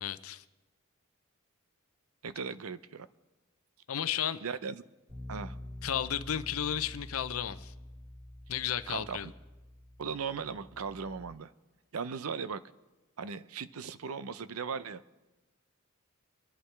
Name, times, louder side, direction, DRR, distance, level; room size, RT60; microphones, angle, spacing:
voice 1, 0.0-0.4 3.9-4.4 5.8-7.7 8.5-9.3, left 9 dB, 75° left, 13 dB, 0.6 m, -33 dB
voice 2, 2.2-3.1 4.4-4.8 5.3-5.6 8.9-9.2 10.0-11.5 11.9-12.6 13.2-15.0, right 5 dB, 90° right, 14 dB, 0.6 m, -37 dB
Bass guitar, 5.1-11.3, left 1 dB, 25° right, 5.5 m, -47 dB
25.5 x 11.0 x 3.4 m, 1.1 s
head